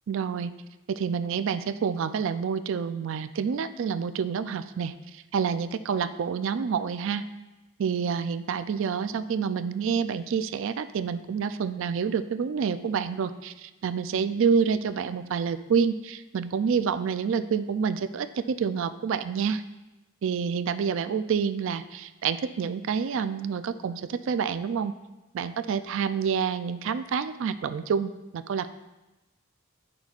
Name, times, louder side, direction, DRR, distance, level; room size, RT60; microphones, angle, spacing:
voice 1, 0.1-0.6 0.9-7.2 7.8-19.6 20.2-24.9 25.3-28.7, right 6 dB, 60° right, 12 dB, 0.3 m, -28 dB
9.4 x 6.0 x 2.4 m, 1.0 s
head